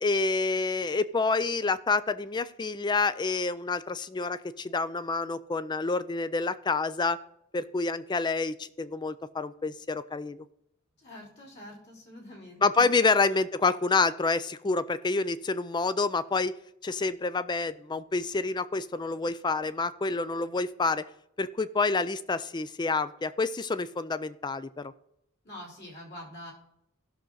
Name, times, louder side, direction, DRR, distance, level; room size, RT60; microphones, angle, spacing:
voice 1, 0.0-7.2 7.5-10.4 12.6-16.5 16.8-21.0 21.4-24.9, left 3 dB, 20° left, 15 dB, 0.4 m, -28 dB
voice 2, 11.0-12.9 25.4-26.5, left 1 dB, 55° left, -4 dB, 3.8 m, -45 dB
15.5 x 6.3 x 3.9 m, 0.78 s
head